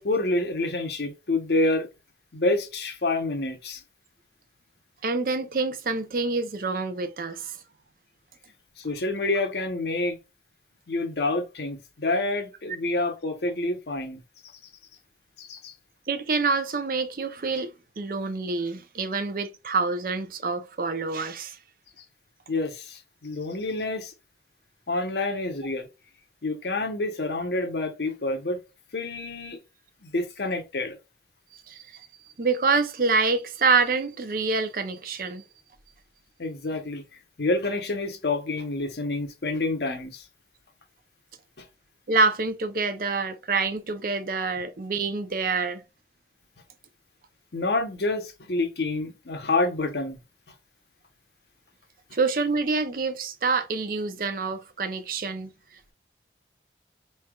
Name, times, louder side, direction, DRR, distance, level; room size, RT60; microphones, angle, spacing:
voice 1, 0.0-1.9 2.3-3.8 8.8-10.2 10.9-14.2 15.4-15.7 22.5-24.1 24.9-25.9 26.4-28.6 28.9-29.6 30.0-31.0 36.4-37.0 37.4-40.3 41.6-41.7 47.5-50.2, left 2 dB, 70° left, 0.9 m, -28 dB
voice 2, 5.0-7.6 16.1-21.6 31.7-32.1 32.4-35.4 42.1-45.8 52.1-55.5, right 4 dB, 50° right, 0.5 m, -26 dB
4.3 x 3.2 x 2.3 m
head